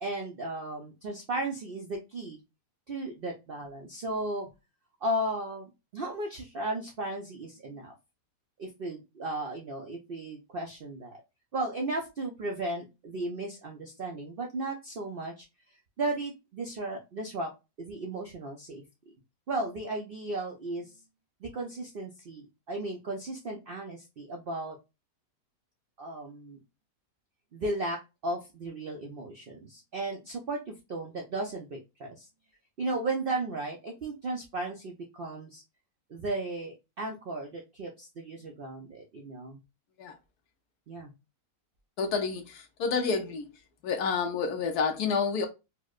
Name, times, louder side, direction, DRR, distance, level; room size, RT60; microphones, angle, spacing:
voice 1, 0.0-2.4 2.9-4.5 5.0-7.9 8.6-11.2 11.5-15.4 16.0-17.5 17.8-18.8 19.5-21.0 21.4-24.8 26.0-26.6 27.5-32.3 32.8-35.6 36.1-39.6 40.9-41.1, right 2 dB, 60° right, 0.5 m, -35 dB
voice 2, 42.0-43.5 43.8-45.5, left 5 dB, 75° left, 1.2 m, -29 dB
4.5 x 2.1 x 2.3 m
omnidirectional pair, 1.7 m